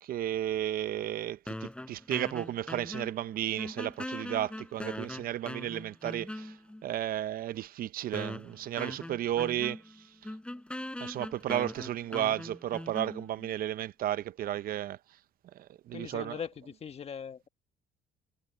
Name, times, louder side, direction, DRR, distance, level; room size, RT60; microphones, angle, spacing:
voice 1, 0.0-6.6 6.8-9.8 10.2-10.3 11.0-15.0 15.6-16.4, right 12 dB, 60° right, 0.6 m, -33 dB
sound 1, 1.5-3.3 3.6-6.8 7.5-7.6 8.1-13.5, left 1 dB, 5° left, 6.8 m, -41 dB
voice 2, 15.9-17.5, left 7 dB, 35° left, 1.4 m, -40 dB
cardioid pair, 110°, 17 cm